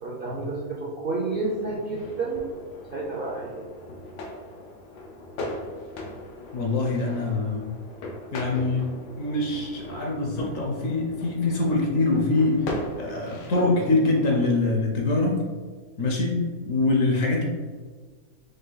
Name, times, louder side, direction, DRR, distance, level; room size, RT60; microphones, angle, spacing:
voice 1, 0.0-2.5 2.9-3.7, right 3 dB, 55° right, -4 dB, 0.6 m, -30 dB
sound 1, 1.3-14.4, left 1 dB, 85° left, 1.3 m, -39 dB
voice 2, 6.5-7.6 8.3-8.9 9.2-12.7 13.0-15.4 16.0-16.4 16.6-17.4, left 2 dB, 60° left, 0 dB, 1.0 m, -24 dB
5.3 x 2.2 x 3.9 m, 1.4 s
omnidirectional pair, 1.7 m